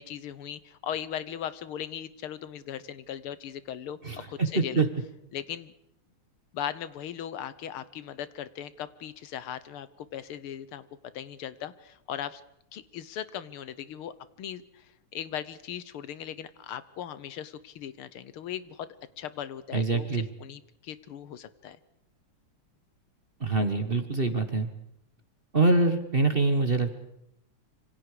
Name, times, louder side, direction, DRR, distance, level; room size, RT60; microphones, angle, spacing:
voice 1, 0.0-4.0 4.3-4.9 5.3-5.7 6.5-10.9 11.1-12.4 12.7-14.9 15.1-18.9 19.2-20.1 20.4-21.8, left 9 dB, 75° left, 15 dB, 1.9 m, -38 dB
voice 2, 4.0-4.9 19.7-20.3 23.4-24.7 25.5-26.9, right 3 dB, 30° right, 8 dB, 1.3 m, -25 dB
26.5 x 25.0 x 5.0 m, 0.79 s
omnidirectional pair, 2.4 m